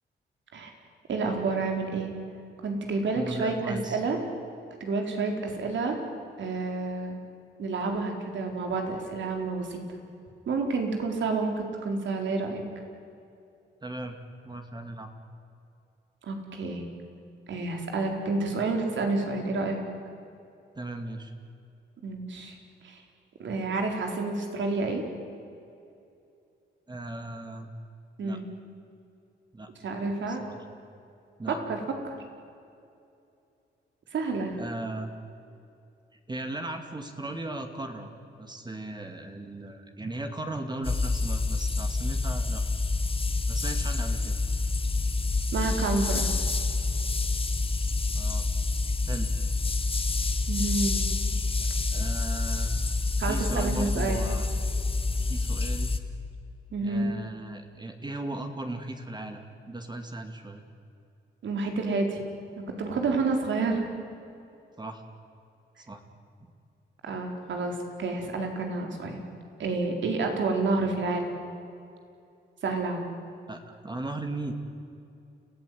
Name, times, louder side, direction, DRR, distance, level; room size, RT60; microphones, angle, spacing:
voice 1, 1.1-2.1 2.6-4.2 4.8-6.0 6.4-7.2 7.6-9.8 10.5-12.6 16.2-16.9 17.5-19.8 22.0-22.6 22.8-23.0 23.4-25.0 28.2-28.4 29.8-30.4 31.7-32.2 34.1-34.6 45.5-46.3 50.5-51.1 53.2-54.2 56.7-57.1 61.4-62.2 62.6-63.8 67.0-69.2 69.6-71.3 72.6-73.0, right 3 dB, 70° right, 3 dB, 4.4 m, -29 dB
voice 2, 3.2-4.0 13.8-14.2 14.4-15.1 20.7-21.3 26.9-27.7 28.2-28.4 29.5-29.7 30.3-30.6 31.4-31.6 34.6-35.1 36.3-42.6 43.5-44.3 48.1-48.5 49.1-49.3 51.9-52.7 53.3-54.5 55.3-55.9 56.8-60.6 64.8-65.0 65.8-66.0 73.5-74.5, right 2 dB, 20° right, 5 dB, 2.4 m, -37 dB
sound 1, 40.8-56.0, left 3 dB, 30° left, 1.7 m, -27 dB
29.5 x 16.0 x 9.6 m, 2.6 s
cardioid pair, 95°, 20 cm